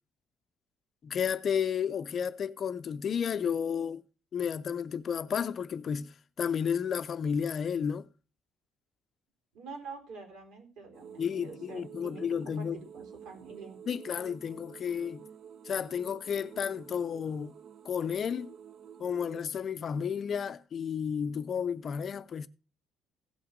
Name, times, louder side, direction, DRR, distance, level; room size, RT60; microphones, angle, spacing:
voice 1, 1.0-4.0 4.3-8.1 11.2-12.8 13.9-15.2 15.6-17.5 17.8-18.5 19.0-22.5, left 7 dB, 35° left, 0.5 m, -32 dB
voice 2, 9.5-13.8, right 4 dB, 70° right, 4.1 m, -46 dB
sound 1, 10.9-19.4, right 8 dB, 50° right, 0.7 m, -50 dB
16.5 x 5.8 x 5.2 m
cardioid pair, 160°, 0 cm